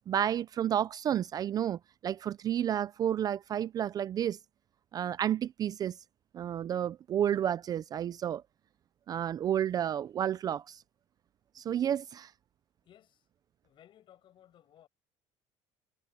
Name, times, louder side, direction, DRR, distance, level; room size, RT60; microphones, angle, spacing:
voice 1, 0.0-4.4 4.9-6.0 6.3-8.4 9.1-10.8 11.6-12.3, right 10 dB, 35° right, 0.4 m, -31 dB
voice 2, 12.8-13.2 13.6-14.9, left 11 dB, 45° left, 7.7 m, -60 dB
cardioid pair, 150°, 11 cm